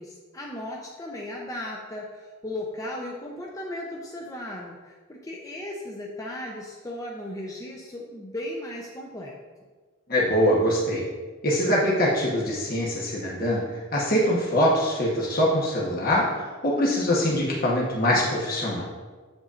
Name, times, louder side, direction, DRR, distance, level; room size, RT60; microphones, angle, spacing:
voice 1, 0.0-9.4, left 1 dB, 15° left, -2 dB, 0.6 m, -36 dB
voice 2, 10.1-11.0 11.4-13.6 13.9-16.3 16.6-18.9, equal, 45° left, -5 dB, 1.1 m, -23 dB
7.9 x 6.8 x 2.5 m, 1.4 s
head